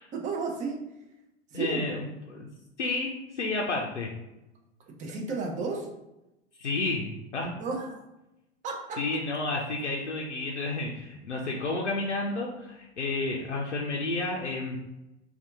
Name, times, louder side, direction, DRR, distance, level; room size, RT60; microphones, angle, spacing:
voice 1, 0.1-0.8 1.5-1.8 5.0-5.9 7.4-8.0 8.6-9.0, right 4 dB, 20° right, 1 dB, 0.6 m, -32 dB
voice 2, 1.5-2.5 2.8-4.1 6.6-7.5 9.0-14.8, left 2 dB, 85° left, -1 dB, 0.5 m, -31 dB
2.6 x 2.3 x 3.4 m, 0.95 s
figure-of-eight pair, 85°, 34 cm